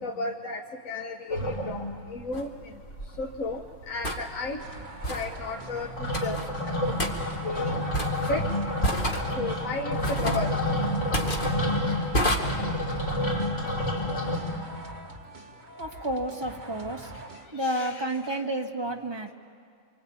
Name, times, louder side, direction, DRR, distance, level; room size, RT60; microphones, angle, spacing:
voice 1, 0.0-2.7 3.2-4.6 5.1-6.4 6.6-6.8 7.2-7.7 8.2-8.5 9.4-10.5 11.9-12.0 17.5-18.4, left 3 dB, 85° left, 1 dB, 1.6 m, -34 dB
sound 1, 1.3-2.2 2.6-2.7 2.9-3.5 3.8-14.4, left 1 dB, 65° left, 6.6 m, -29 dB
sound 2, 2.3-2.5 4.0-4.2 5.0-5.3 6.1-6.5 7.0-7.1 7.9-8.3 8.8-9.3 10.0-10.5 11.1-11.5 12.1-12.4, equal, 40° left, 2.4 m, -28 dB
sound 3, 4.6-17.5, right 2 dB, 55° right, 2.3 m, -43 dB
voice 2, 15.8-17.1 17.5-19.3, right 1 dB, 20° right, 1 dB, 1.9 m, -31 dB
27.5 x 24.0 x 8.8 m, 2.2 s
omnidirectional pair, 1.3 m